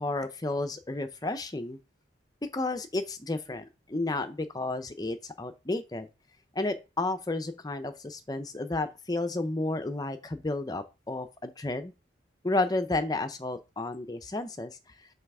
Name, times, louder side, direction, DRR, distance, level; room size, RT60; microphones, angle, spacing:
voice 1, 0.0-1.8 2.5-6.1 6.6-11.9 12.4-14.8, left 2 dB, 20° left, 0.5 m, -32 dB
5.6 x 4.1 x 4.7 m
head